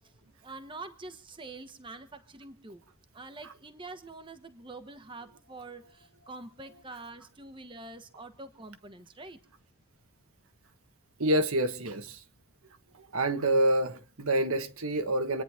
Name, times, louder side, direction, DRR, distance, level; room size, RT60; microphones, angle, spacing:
voice 1, 0.4-2.8 3.1-9.4, right 3 dB, 20° right, 1.1 m, -45 dB
voice 2, 11.2-12.2 12.9-15.4, right 1 dB, 80° right, 1.4 m, -27 dB
27.5 x 10.0 x 3.6 m
head